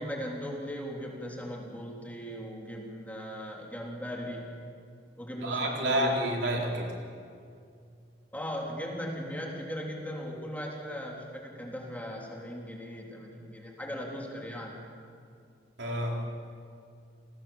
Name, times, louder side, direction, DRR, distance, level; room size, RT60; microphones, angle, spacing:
voice 1, 0.0-4.5 5.2-6.2 8.3-14.8, equal, 10° left, -1 dB, 3.5 m, -38 dB
voice 2, 5.4-6.9 15.8-16.3, right 1 dB, 70° right, 0 dB, 4.0 m, -29 dB
29.5 x 20.0 x 7.4 m, 2.3 s
head